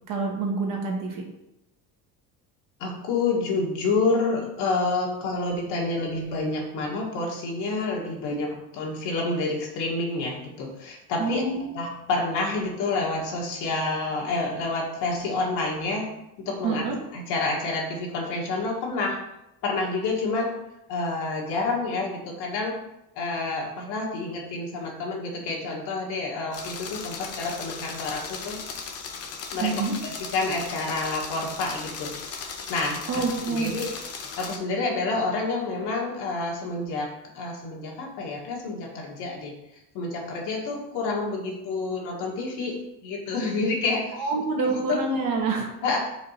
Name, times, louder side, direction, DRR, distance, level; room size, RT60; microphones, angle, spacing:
voice 1, 0.1-1.2 8.3-8.4 11.2-11.7 16.6-17.0 29.6-30.0 33.1-33.7 44.2-45.7, right 3 dB, 50° right, 1 dB, 1.4 m, -27 dB
voice 2, 2.8-11.4 11.7-16.1 16.4-16.8 17.1-19.2 19.6-20.5 20.9-22.8 23.2-28.6 29.5-29.7 30.0-32.4 32.7-33.0 33.5-33.9 34.4-44.3 44.6-45.0 45.8-46.0, left 3 dB, 70° left, -2 dB, 1.9 m, -28 dB
sound 1, 26.5-34.6, left 5 dB, 35° left, 0.7 m, -37 dB
5.1 x 3.8 x 5.6 m, 0.86 s
cardioid pair, 155°, 41 cm